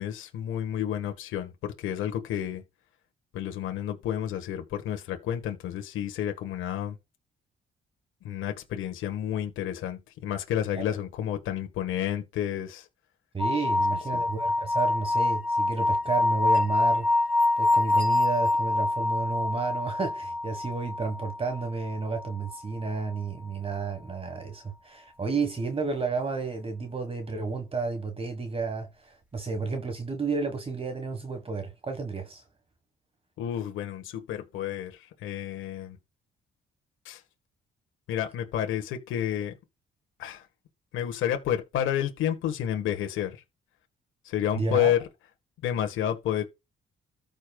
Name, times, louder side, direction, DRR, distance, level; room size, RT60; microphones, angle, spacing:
voice 1, 0.0-2.6 3.3-7.0 8.2-12.9 14.1-14.2 33.4-36.0 37.0-37.2 38.1-39.5 40.2-40.4 40.9-43.4 44.2-45.0 45.6-46.4, left 10 dB, 90° left, 1.4 m, -30 dB
voice 2, 13.3-17.1 17.6-32.4 44.5-44.9, right 4 dB, 30° right, 1.5 m, -31 dB
sound 1, 13.4-22.8, left 2 dB, 10° right, 5.2 m, -26 dB
14.0 x 5.4 x 2.3 m
cardioid pair, 90°, 20 cm